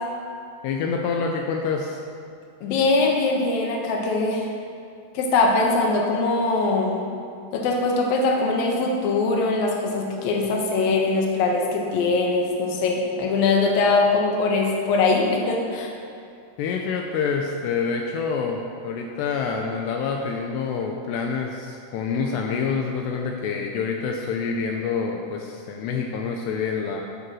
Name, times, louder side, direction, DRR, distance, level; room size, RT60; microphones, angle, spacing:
voice 1, 0.6-2.0 16.6-27.0, left 5 dB, 85° left, 1 dB, 2.4 m, -27 dB
voice 2, 2.6-4.5 5.1-7.0 7.5-15.9, left 3 dB, 70° left, 0 dB, 2.3 m, -22 dB
10.5 x 6.8 x 6.2 m, 2.5 s
omnidirectional pair, 5.7 m